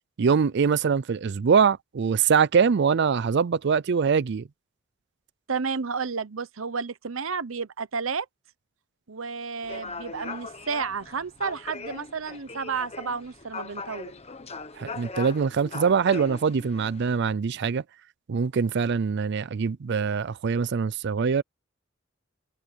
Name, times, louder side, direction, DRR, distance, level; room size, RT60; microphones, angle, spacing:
voice 1, 0.2-4.5 14.8-17.8 18.3-21.4, right 6 dB, 55° right, 0.4 m, -23 dB
voice 2, 5.5-8.3 9.1-14.1, right 5 dB, 85° right, 1.0 m, -31 dB
sound 1, 9.6-17.2, left 3 dB, 30° left, 1.2 m, -40 dB
head